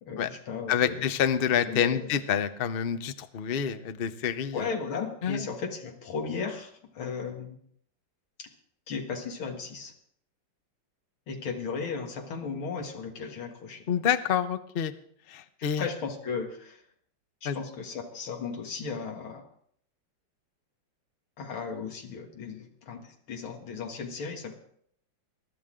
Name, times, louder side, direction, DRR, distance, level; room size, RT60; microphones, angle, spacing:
voice 1, 0.0-1.1 1.7-2.1 4.5-7.6 8.4-8.5 8.9-9.9 11.3-13.9 15.6-16.8 17.4-19.4 21.4-24.6, left 5 dB, 90° left, 3 dB, 2.5 m, -36 dB
voice 2, 0.7-4.7 5.2-5.5 13.9-14.9 15.3-15.8 17.4-17.6, left 8 dB, 75° left, 11 dB, 0.5 m, -27 dB
22.0 x 12.0 x 3.7 m, 0.64 s
omnidirectional pair, 2.2 m